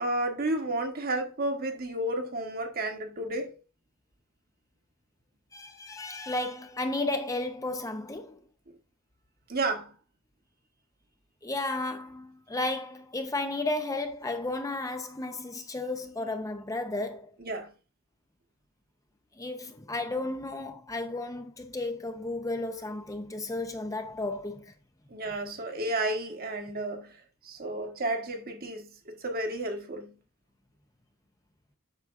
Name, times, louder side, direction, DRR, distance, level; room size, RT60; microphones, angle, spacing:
voice 1, 0.0-3.6 9.5-9.9 17.5-17.7 25.1-30.2, right 2 dB, 45° right, 1.3 m, -32 dB
voice 2, 5.5-8.4 11.4-17.4 19.3-24.7, left 2 dB, 15° left, 0.6 m, -33 dB
8.2 x 6.0 x 2.6 m
head